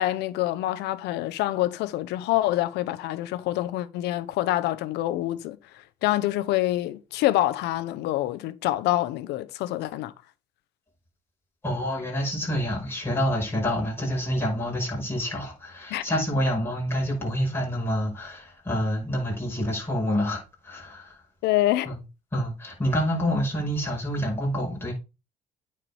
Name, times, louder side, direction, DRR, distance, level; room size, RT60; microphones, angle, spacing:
voice 1, 0.0-5.6 6.0-10.1 15.9-16.0 21.4-22.0, left 15 dB, 90° left, 0.9 m, -26 dB
voice 2, 11.6-21.2 21.9-22.0 22.3-24.9, equal, 15° left, 5.6 m, -27 dB
9.0 x 4.8 x 4.9 m
cardioid pair, 110°, 17 cm